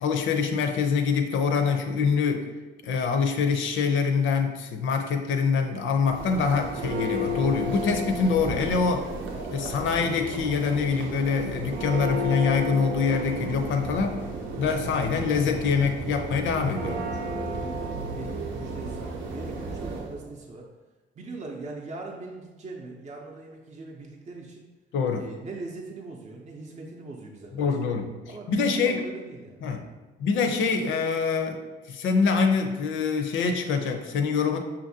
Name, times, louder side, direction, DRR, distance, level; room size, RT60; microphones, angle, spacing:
voice 1, 0.0-2.5 2.8-9.1 9.5-14.2 14.6-17.0 24.9-25.3 27.5-28.1 28.5-29.1 29.6-29.8 30.2-31.6 31.9-34.6, left 5 dB, 75° left, 5 dB, 0.5 m, -25 dB
Church bell, 5.9-20.2, right 1 dB, 80° right, 0.7 m, -33 dB
voice 2, 17.0-20.7 21.2-24.7 25.1-27.9 28.3-29.8, right 3 dB, 35° right, -1 dB, 0.5 m, -41 dB
5.7 x 2.5 x 2.7 m, 1.2 s
cardioid pair, 90°, 20 cm